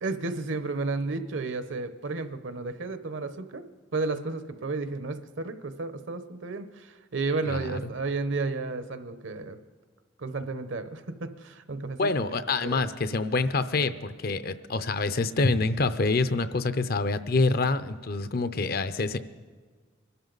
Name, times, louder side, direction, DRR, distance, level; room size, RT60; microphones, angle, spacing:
voice 1, 0.0-3.6 3.9-9.6 10.2-12.1 12.6-12.9, right 3 dB, 70° right, 11 dB, 0.8 m, -32 dB
voice 2, 12.0-19.2, left 3 dB, 50° left, 12 dB, 0.6 m, -26 dB
23.0 x 12.5 x 4.0 m, 1.5 s
head